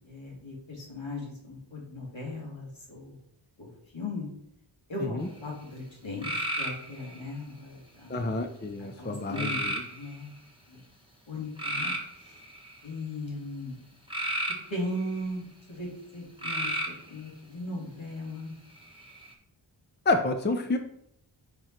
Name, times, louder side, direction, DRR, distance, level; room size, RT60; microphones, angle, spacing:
voice 1, 0.0-3.1 3.6-4.3 4.9-8.2 8.8-10.3 10.7-10.8 11.3-11.9 12.2-12.4 12.8-13.8 14.7-15.9 16.1-16.7 17.1-18.5, left 1 dB, 70° left, -3 dB, 2.4 m, -38 dB
sound 1, 6.2-7.2 9.3-10.2 11.6-12.8 14.1-15.2 16.4-17.1 18.8-19.3, right 1 dB, 10° right, 1.2 m, -32 dB
voice 2, 8.1-9.8 20.1-20.8, left 2 dB, 20° left, 6 dB, 0.6 m, -29 dB
5.1 x 4.6 x 4.5 m, 0.73 s
wide cardioid pair, 55°, 48 cm